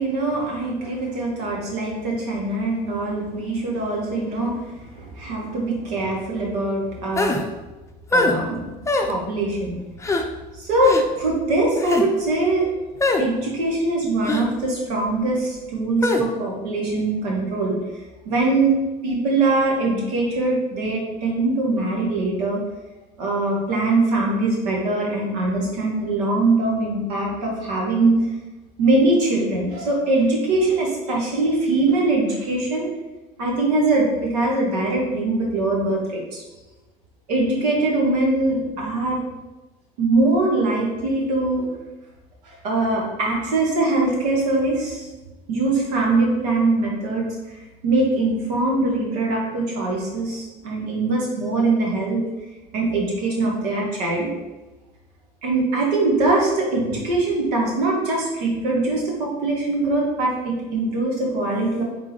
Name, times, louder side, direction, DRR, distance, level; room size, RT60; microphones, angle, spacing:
voice 1, 0.0-7.4 8.1-8.8 9.1-9.8 10.6-12.6 13.2-17.8 18.2-18.8 19.0-22.6 23.2-28.2 28.8-32.9 33.4-36.4 37.3-39.2 40.0-41.6 42.4-45.2 45.5-47.3 47.8-52.2 52.7-54.3 55.4-61.8, right 2 dB, 85° right, -2 dB, 1.2 m, -22 dB
sound 1, 7.2-7.4 8.1-8.4 8.9-9.1 10.0-10.2 10.8-11.0 11.8-12.1 13.0-13.2 14.2-14.5 16.0-16.2, left 2 dB, 15° left, 0.5 m, -21 dB
3.8 x 3.7 x 3.0 m, 1.1 s
hypercardioid pair, 65°, 20 cm